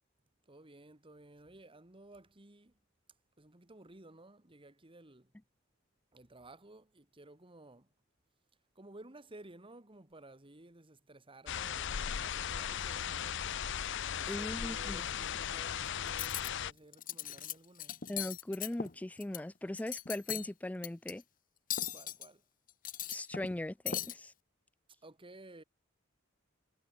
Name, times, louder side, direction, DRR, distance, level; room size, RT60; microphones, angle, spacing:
voice 1, 0.5-2.7 3.4-5.3 6.1-7.9 8.8-13.6 14.1-18.0 21.9-22.4 25.0-25.6, right 2 dB, 25° right, 1.9 m, -55 dB
sound 1, 11.5-16.7, left 8 dB, 60° left, 0.7 m, -37 dB
voice 2, 14.3-15.1 18.1-21.2 23.1-24.3, left 1 dB, 5° left, 0.3 m, -39 dB
Cutlery silverware, 16.1-16.5 16.9-17.5 17.8-19.4 19.7-20.5 20.8-21.1 21.7-22.3 22.7-23.6 23.9-24.1, left 10 dB, 45° left, 1.7 m, -38 dB
head